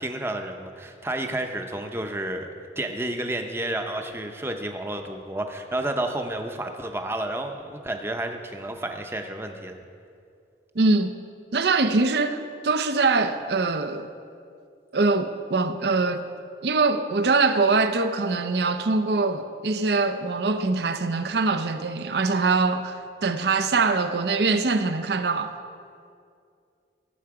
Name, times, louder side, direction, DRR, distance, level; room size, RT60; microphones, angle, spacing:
voice 1, 0.0-2.5 2.8-9.8, right 1 dB, 15° right, 0.6 m, -31 dB
voice 2, 10.7-11.1 11.5-14.1 14.9-16.2 16.6-25.6, right 3 dB, 70° right, 0.6 m, -23 dB
15.0 x 7.8 x 4.8 m
head